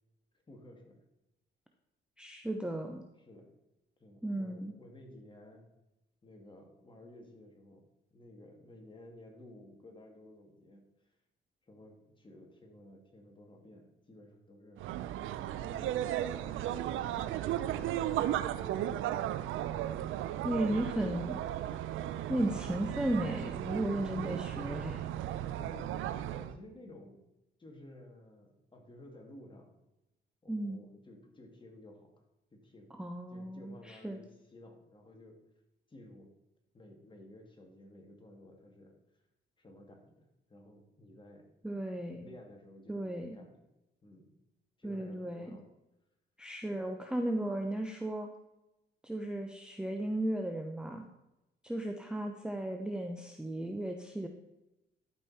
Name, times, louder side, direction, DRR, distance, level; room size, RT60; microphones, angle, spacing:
voice 1, 0.5-1.0 3.2-3.5 4.0-5.6 6.2-7.9 8.1-11.1 11.6-14.8 15.6-16.0 16.3-19.2 24.2-24.4 25.6-27.3 27.6-29.7 30.4-32.1 32.5-32.9 33.3-35.4 35.9-36.3 36.7-38.9 39.6-41.5 42.2-43.5 44.0-44.3 44.8-45.7, left 1 dB, 25° left, 2 dB, 2.4 m, -54 dB
voice 2, 2.2-3.0 4.2-4.7 20.4-21.4 22.3-25.0 30.5-30.8 32.9-34.2 41.6-42.3 42.9-43.4 44.8-45.6 46.4-48.3 49.0-51.1 51.6-54.3, right 1 dB, 5° right, 4 dB, 0.8 m, -35 dB
sound 1, 14.8-26.5, right 12 dB, 85° right, 0.5 m, -35 dB
12.0 x 5.4 x 4.3 m, 0.93 s
cardioid pair, 90°, 20 cm